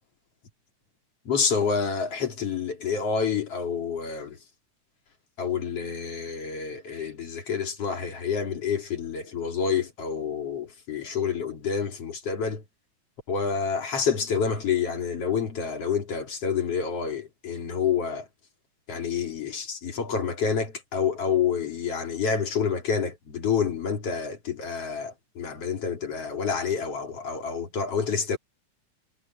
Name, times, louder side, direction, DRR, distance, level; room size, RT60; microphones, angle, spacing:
voice 1, 1.3-4.4 5.4-12.6 13.3-18.3 18.9-28.4, left 6 dB, 50° left, 3.7 m, -28 dB
omnidirectional pair, 3.5 m